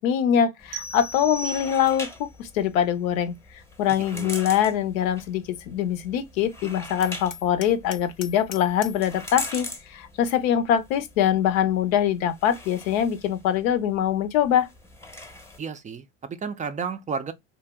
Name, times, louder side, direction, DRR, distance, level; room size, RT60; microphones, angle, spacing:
voice 1, 0.0-3.3 3.8-14.7, left 9 dB, 85° left, 0.6 m, -23 dB
sound 1, 0.6-15.6, left 1 dB, 5° left, 0.7 m, -42 dB
sound 2, 0.7-2.2, right 1 dB, 80° right, 0.7 m, -36 dB
Hammer, 7.0-9.1, left 9 dB, 45° left, 0.6 m, -41 dB
voice 2, 15.6-17.3, right 5 dB, 20° right, 0.3 m, -32 dB
2.8 x 2.0 x 3.3 m
supercardioid pair, 90°, 40 cm